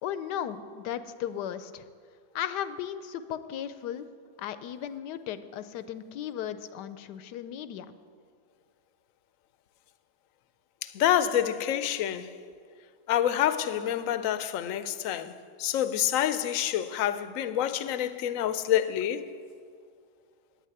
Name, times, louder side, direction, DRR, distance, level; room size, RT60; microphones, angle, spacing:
voice 1, 0.0-1.8 2.3-4.1 4.4-7.9, left 10 dB, 85° left, 1.2 m, -36 dB
voice 2, 10.8-12.3 13.1-19.3, left 11 dB, 65° left, 0.9 m, -27 dB
9.2 x 8.9 x 9.6 m
omnidirectional pair, 1.8 m